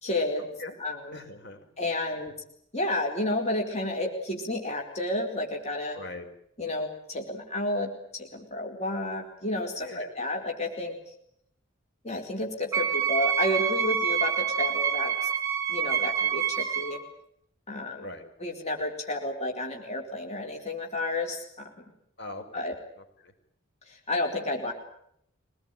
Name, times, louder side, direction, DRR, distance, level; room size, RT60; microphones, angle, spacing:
voice 1, 0.0-0.5 0.8-1.2 1.8-2.3 2.7-6.0 6.6-10.9 12.0-15.3 15.7-17.0 17.7-18.1 18.4-21.8 22.5-22.8 23.9-24.7, left 1 dB, 35° left, 1 dB, 4.5 m, -31 dB
voice 2, 1.1-1.7 6.0-6.3 9.8-10.1 18.0-18.3 22.2-22.7, left 2 dB, 60° left, 5 dB, 5.2 m, -40 dB
Wind instrument woodwind instrument, 12.7-17.0, right 8 dB, 15° right, 5.6 m, -27 dB
25.0 x 20.0 x 9.2 m, 0.72 s
head